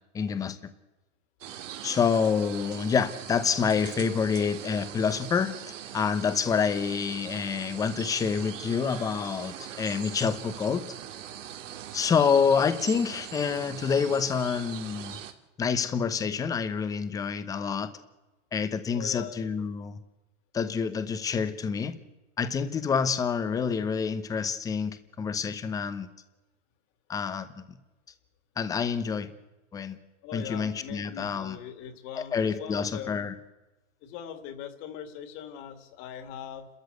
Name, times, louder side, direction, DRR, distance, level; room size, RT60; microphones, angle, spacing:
voice 1, 0.1-0.6 1.8-10.9 11.9-15.2 15.6-17.9 18.5-19.9 20.5-21.9 22.4-26.1 27.1-27.5 28.6-29.3 29.7-30.0 30.3-31.6 32.2-33.3, left 6 dB, 10° left, 12 dB, 0.9 m, -27 dB
sound 1, 1.4-15.3, right 10 dB, 80° right, 2.6 m, -41 dB
voice 2, 18.9-19.5 30.2-33.3 34.0-36.7, left 8 dB, 35° left, 9 dB, 2.4 m, -41 dB
29.5 x 13.5 x 8.1 m, 1.1 s
supercardioid pair, 160°, 37 cm